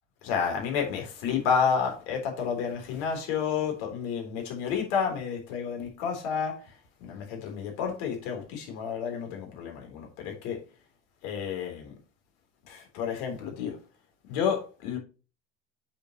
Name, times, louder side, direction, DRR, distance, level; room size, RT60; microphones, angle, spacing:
voice 1, 0.2-6.7 7.0-10.6 11.2-11.9 12.7-13.8 14.3-15.0, left 7 dB, 65° left, 3.8 m, -30 dB
8.2 x 6.9 x 3.0 m
hypercardioid pair, 70°, 35 cm